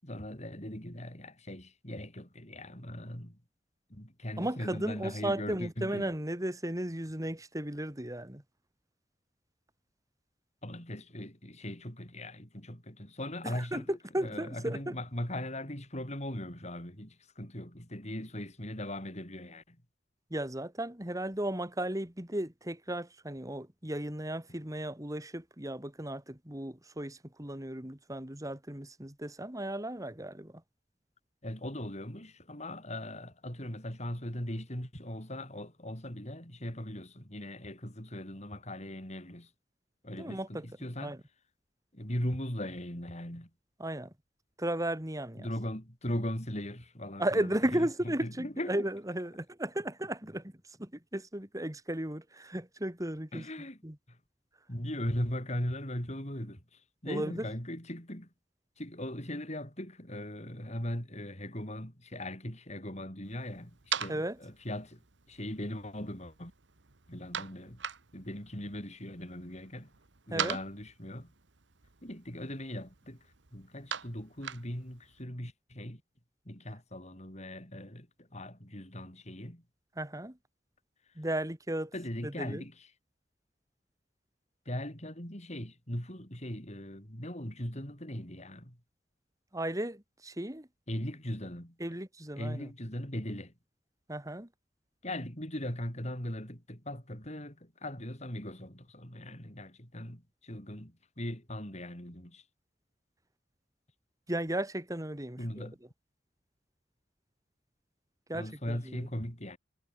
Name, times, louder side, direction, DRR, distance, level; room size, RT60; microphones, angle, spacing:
voice 1, 0.0-3.4 3.9-6.1 10.6-19.8 31.4-39.5 40.0-41.2 41.9-43.5 45.4-48.9 53.3-53.8 54.1-54.2 54.7-58.3 58.8-65.0 65.3-66.5 67.1-67.8 68.1-69.9 70.3-71.3 72.0-76.0 76.4-79.6 81.9-82.9 84.7-88.8 90.9-91.8 92.4-93.5 95.0-102.4 105.4-105.8 108.3-109.6, left 1 dB, 40° left, 7.9 m, -39 dB
voice 2, 4.4-8.4 13.4-13.8 14.1-14.9 20.3-30.5 40.2-40.7 41.0-41.2 43.8-44.1 44.6-45.5 47.2-53.4 53.8-53.9 57.1-57.5 64.1-64.4 70.3-70.6 80.0-80.3 81.2-81.9 82.2-82.6 89.5-90.7 91.8-92.7 94.1-94.5 104.3-105.7 108.3-109.1, right 1 dB, 20° right, 2.6 m, -35 dB
sound 1, 63.2-75.2, right 8 dB, 75° right, 1.5 m, -43 dB
head